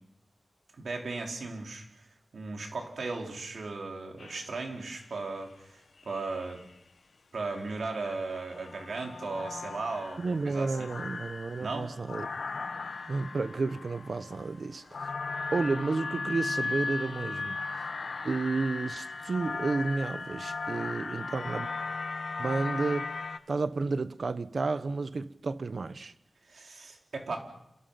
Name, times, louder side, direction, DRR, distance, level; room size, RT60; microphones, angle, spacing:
voice 1, 0.8-2.1 2.3-6.6 7.3-10.9 11.6-11.9 26.4-27.4, right 3 dB, 85° right, 4.7 m, -36 dB
sound 1, 4.2-5.0 6.0-6.7 7.4-23.4, left 4 dB, 75° left, 1.3 m, -37 dB
voice 2, 10.2-12.3 13.1-15.1 15.5-17.6 18.2-21.7 22.4-23.1 23.5-26.1, right 3 dB, 65° right, 1.1 m, -31 dB
29.0 x 28.5 x 5.9 m
wide cardioid pair, 95°, 0 cm